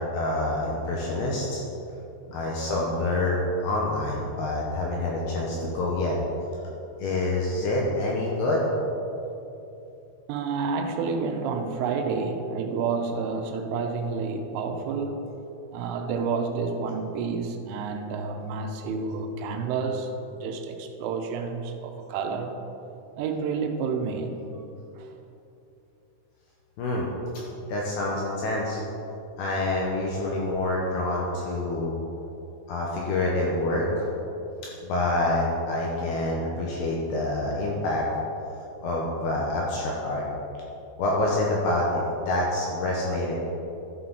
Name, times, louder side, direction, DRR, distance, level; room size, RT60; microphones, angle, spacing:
voice 1, 0.1-1.6 2.3-6.2 7.0-8.6 26.8-27.1 27.7-28.8 29.4-31.9 32.7-34.1 34.8-38.1 38.8-40.2 41.0-43.3, left 2 dB, 80° left, -3 dB, 2.4 m, -27 dB
voice 2, 10.3-15.3 15.7-20.1 20.4-22.6 23.2-24.4 25.0-25.1 43.1-43.2, right 5 dB, 85° right, 4 dB, 3.2 m, -29 dB
12.5 x 5.9 x 3.9 m, 2.9 s
omnidirectional pair, 5.6 m